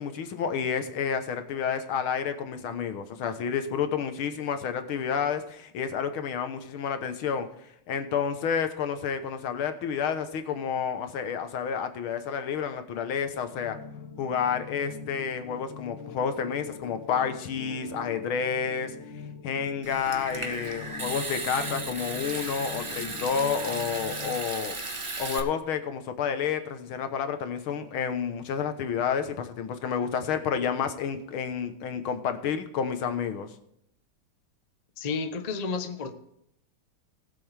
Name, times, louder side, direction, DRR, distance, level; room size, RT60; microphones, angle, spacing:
voice 1, 0.0-7.5 7.9-13.8 14.2-18.9 19.4-24.7 25.2-33.5, left 7 dB, 80° left, 8 dB, 1.9 m, -30 dB
sound 1, 13.5-24.4, left 4 dB, 65° left, 1.7 m, -43 dB
Water tap faucet / Sink (filling or washing) / Trickle dribble, 19.8-25.4, right 2 dB, 25° right, 0.7 m, -35 dB
voice 2, 35.0-36.1, left 4 dB, 40° left, 7 dB, 0.6 m, -31 dB
19.5 x 7.7 x 3.4 m, 0.76 s
omnidirectional pair, 2.3 m